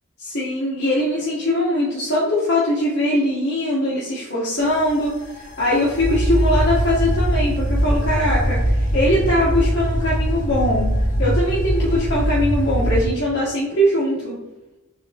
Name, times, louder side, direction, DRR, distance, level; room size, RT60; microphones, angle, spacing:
voice 1, 0.2-10.9 11.2-14.4, left 1 dB, 60° left, -8 dB, 1.8 m, -21 dB
sound 1, 4.6-13.1, equal, 40° left, 1.4 m, -22 dB
7.5 x 4.1 x 3.1 m, 0.97 s
head